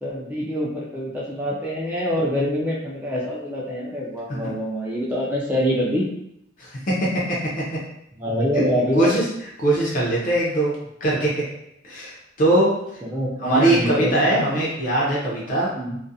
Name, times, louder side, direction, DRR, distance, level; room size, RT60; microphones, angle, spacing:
voice 1, 0.0-6.1 8.2-9.1 13.0-14.4 15.7-16.0, equal, 10° right, -5 dB, 0.3 m, -25 dB
voice 2, 6.6-7.1 8.9-9.2 9.6-10.7 11.0-11.3 11.8-12.7 13.4-15.7, right 1 dB, 45° left, -5 dB, 0.5 m, -21 dB
2.4 x 2.1 x 2.6 m, 0.79 s
head